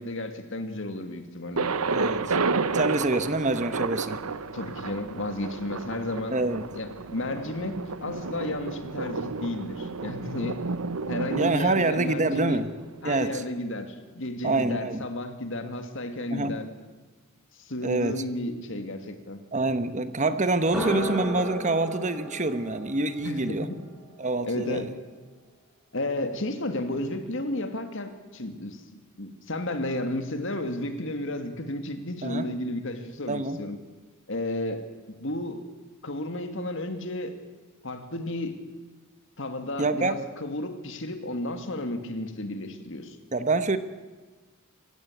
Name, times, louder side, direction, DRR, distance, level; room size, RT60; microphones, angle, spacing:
voice 1, 0.0-1.7 4.5-6.4 6.7-10.6 11.1-12.6 13.0-16.7 17.6-19.4 23.2-23.8 24.5-24.9 25.9-28.8 29.2-33.8 34.3-34.8 35.1-35.6 36.0-37.4 37.8-38.6 39.4-43.2, left 1 dB, 60° left, 8 dB, 2.4 m, -32 dB
Thunder, 1.6-13.4, right 4 dB, 85° right, 1.0 m, -31 dB
voice 2, 1.9-2.4 2.7-4.2 6.3-6.6 11.4-12.7 13.0-13.4 14.4-15.0 16.3-16.6 17.8-18.2 19.5-23.7 24.2-24.9 32.2-32.5 33.3-33.6 39.8-40.1 43.3-43.8, right 2 dB, 35° right, 11 dB, 1.2 m, -26 dB
sound 1, 20.5-24.5, right 1 dB, ahead, 7.3 m, -35 dB
26.5 x 16.0 x 8.1 m, 1.3 s
head